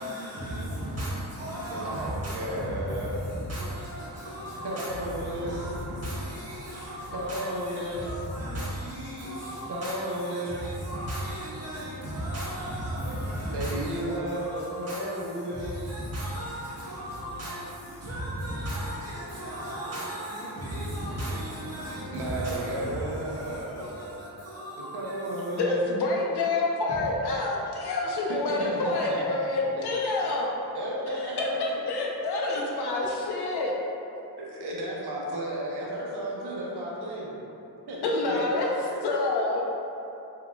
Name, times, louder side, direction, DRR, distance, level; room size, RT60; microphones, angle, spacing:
voice 1, 0.0-25.5 26.9-27.2, right 1 dB, 40° right, -8 dB, 1.4 m, -36 dB
voice 2, 1.7-3.2 4.6-8.0 9.7-10.6 13.5-15.7 22.1-24.2 24.9-25.8 28.3-29.2 29.8-30.2 30.7-31.6 32.3-32.4 34.4-37.3 37.8-38.0 38.3-38.4 38.9-39.0, right 1 dB, 80° right, -4 dB, 0.9 m, -33 dB
voice 3, 25.5-30.5 31.4-33.7 38.0-38.7 39.0-39.6, left 3 dB, 85° left, -2 dB, 0.7 m, -27 dB
4.3 x 3.9 x 2.3 m, 2.9 s
cardioid pair, 75°, 38 cm